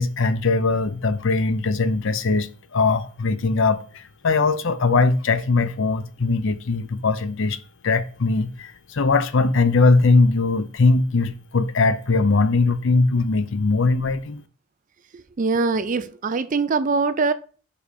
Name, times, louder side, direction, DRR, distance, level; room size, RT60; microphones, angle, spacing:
voice 1, 0.0-7.6 7.8-14.4, left 3 dB, 60° left, 0.5 m, -20 dB
voice 2, 15.4-17.3, right 4 dB, 35° right, 0.4 m, -22 dB
5.2 x 4.9 x 5.0 m
head